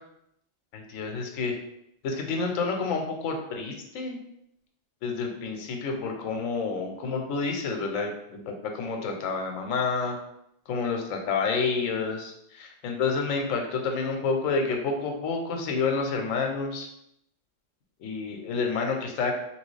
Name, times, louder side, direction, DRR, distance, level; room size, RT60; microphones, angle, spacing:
voice 1, 0.7-1.5 2.0-4.2 5.0-10.1 10.7-16.9 18.0-19.3, left 4 dB, 90° left, 3 dB, 1.0 m, -29 dB
2.9 x 2.8 x 3.1 m, 0.77 s
omnidirectional pair, 1.3 m